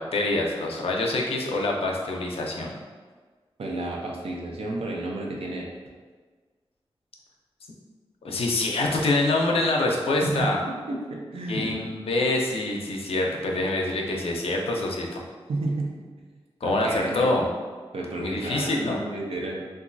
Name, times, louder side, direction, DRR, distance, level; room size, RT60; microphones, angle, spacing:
voice 1, 0.0-2.7 8.2-10.6 11.5-15.2 16.6-17.5 18.2-19.0, left 2 dB, 75° left, 0 dB, 0.4 m, -25 dB
voice 2, 3.6-5.7 10.2-11.8 13.4-13.5 15.5-16.3 16.6-17.3 17.9-19.6, right 2 dB, 80° right, -1 dB, 0.5 m, -32 dB
3.0 x 2.4 x 2.5 m, 1.5 s
cardioid pair, 55°, 10 cm